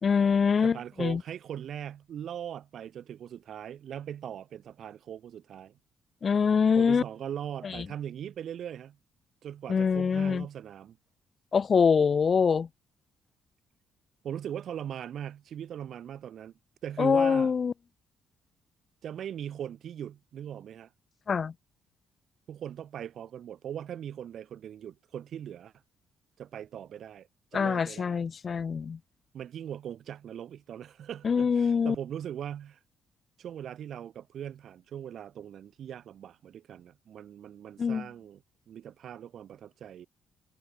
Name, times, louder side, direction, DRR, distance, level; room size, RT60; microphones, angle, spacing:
voice 1, 0.0-1.2 6.2-7.0 7.6-7.8 9.7-10.5 11.5-12.7 17.0-17.7 21.3-21.5 27.5-29.0 31.2-31.9 37.8-38.1, left 6 dB, 45° left, 1.7 m, -24 dB
voice 2, 0.6-5.8 6.8-9.0 9.4-11.0 14.2-16.5 16.8-17.5 19.0-20.9 22.5-25.7 26.4-28.2 29.3-32.8 33.4-38.4 38.7-40.1, right 9 dB, 65° right, 3.7 m, -40 dB
cardioid pair, 90°, 0 cm